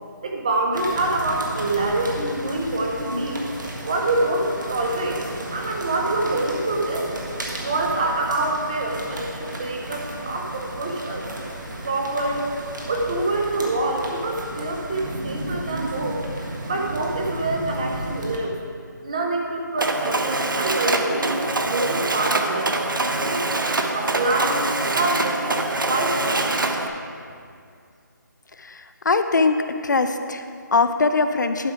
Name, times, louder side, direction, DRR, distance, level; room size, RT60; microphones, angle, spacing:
voice 1, 0.2-3.4 3.8-5.2 5.5-7.2 7.6-11.2 11.8-12.4 12.9-16.2 16.6-18.5 19.0-23.5 23.9-24.6 24.9-25.6 25.8-26.3, right 2 dB, 20° right, 0 dB, 0.6 m, -26 dB
sound 1, 0.7-18.4, right 1 dB, 70° right, 1.5 m, -33 dB
Mechanisms, 19.8-26.9, right 2 dB, 85° right, 0.8 m, -24 dB
voice 2, 28.6-31.7, left 4 dB, 65° left, 9 dB, 0.5 m, -22 dB
11.5 x 4.9 x 4.8 m, 2.3 s
figure-of-eight pair, 175°, 11 cm